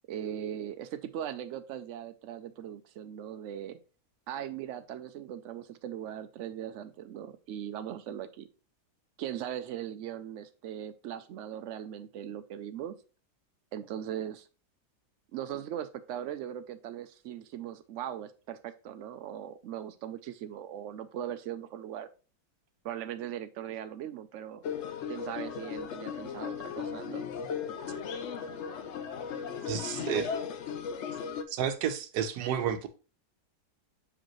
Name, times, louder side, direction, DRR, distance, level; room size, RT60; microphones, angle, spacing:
voice 1, 0.1-3.8 4.3-8.5 9.2-13.0 13.7-14.5 15.3-22.1 22.8-24.6 25.1-27.3, right 10 dB, 70° right, 0.7 m, -39 dB
sound 1, 24.6-31.4, left 7 dB, 65° left, 0.7 m, -36 dB
voice 2, 29.7-30.3 31.5-32.9, right 9 dB, 85° right, 1.2 m, -31 dB
6.4 x 5.0 x 3.0 m
omnidirectional pair, 1.7 m